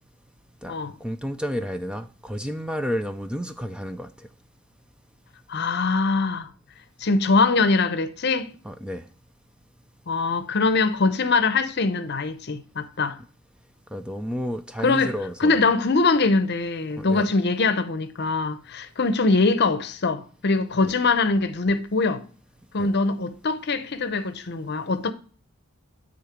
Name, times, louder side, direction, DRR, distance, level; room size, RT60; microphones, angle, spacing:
voice 1, 1.0-4.3 8.6-9.0 13.9-15.6 17.0-17.3 22.8-22.9, equal, 5° right, 0.4 m, -31 dB
voice 2, 5.5-6.5 7.0-8.5 10.1-13.2 14.8-15.1 15.4-22.2 22.7-25.1, left 3 dB, 50° left, 0.7 m, -22 dB
9.6 x 4.0 x 5.0 m
head